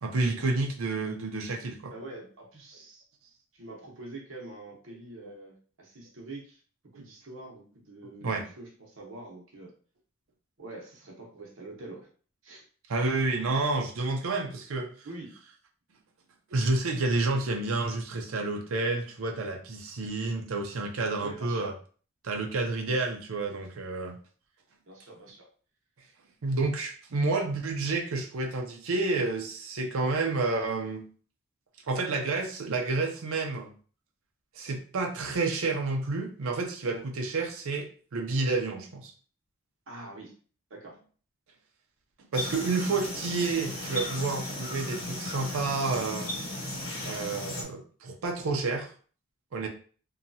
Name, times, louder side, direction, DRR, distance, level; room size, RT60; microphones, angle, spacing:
voice 1, 0.0-1.9 6.9-7.1 8.2-8.5 12.9-14.9 16.5-21.7 22.2-24.2 26.4-31.0 31.9-33.7 34.6-39.1 42.3-46.4 47.0-48.9 49.5-49.7, right 3 dB, 80° right, 2 dB, 0.5 m, -30 dB
voice 2, 1.9-3.0 3.5-6.6 6.9-9.7 10.6-12.1 12.4-12.6 15.0-15.3 21.2-21.7 24.9-25.5 26.0-26.1 39.9-40.3 40.7-41.0, right 2 dB, 65° right, 0 dB, 0.9 m, -45 dB
sound 1, 42.3-47.6, left 1 dB, 75° left, 0.9 m, -35 dB
2.8 x 2.3 x 2.6 m, 0.41 s
head